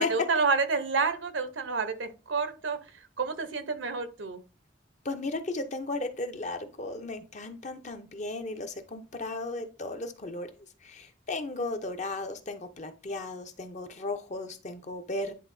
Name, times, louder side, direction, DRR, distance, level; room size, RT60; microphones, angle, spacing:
voice 1, 0.0-2.8 3.2-4.4, right 4 dB, 75° right, 9 dB, 0.8 m, -29 dB
voice 2, 5.0-10.5 10.8-15.3, left 2 dB, 40° left, 7 dB, 0.7 m, -35 dB
10.0 x 3.5 x 2.7 m, 0.32 s
head